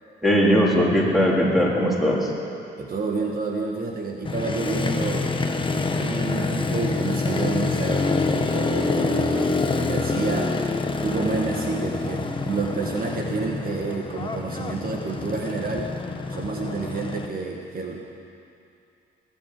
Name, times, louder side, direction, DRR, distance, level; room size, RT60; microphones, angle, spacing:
voice 1, 0.2-2.3, equal, ahead, -4 dB, 3.7 m, -19 dB
voice 2, 2.8-5.3 6.0-10.5 11.0-15.9 16.3-18.1, right 4 dB, 45° right, 1 dB, 1.6 m, -29 dB
Motorcycle, 4.3-17.3, left 3 dB, 25° left, 1.1 m, -26 dB
19.0 x 8.8 x 7.7 m, 2.6 s
cardioid pair, 90°, 20 cm